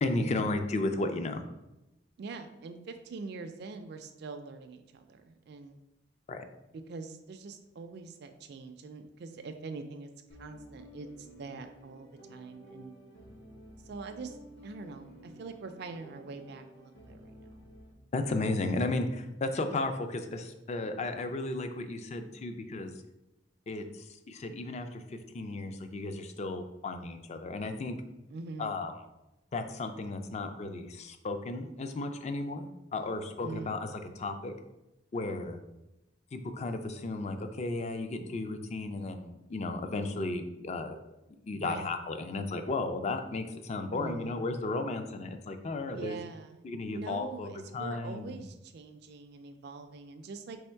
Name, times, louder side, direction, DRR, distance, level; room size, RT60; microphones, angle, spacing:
voice 1, 0.0-1.4 6.3-6.5 18.1-22.9 23.7-28.0 28.6-28.9 29.5-33.9 34.2-34.5 35.1-35.6 36.3-41.0 41.5-46.1 46.6-48.3, left 2 dB, 35° left, 7 dB, 0.4 m, -34 dB
voice 2, 2.2-5.8 6.9-10.1 10.4-12.9 13.8-14.4 14.6-17.5 28.3-28.8 33.4-33.8 41.5-41.9 43.9-44.6 45.9-46.6 46.9-50.6, right 4 dB, 60° right, 6 dB, 0.4 m, -44 dB
sound 1, 10.3-17.9, equal, 80° left, 1.0 m, -52 dB
3.5 x 3.0 x 4.4 m, 0.93 s
head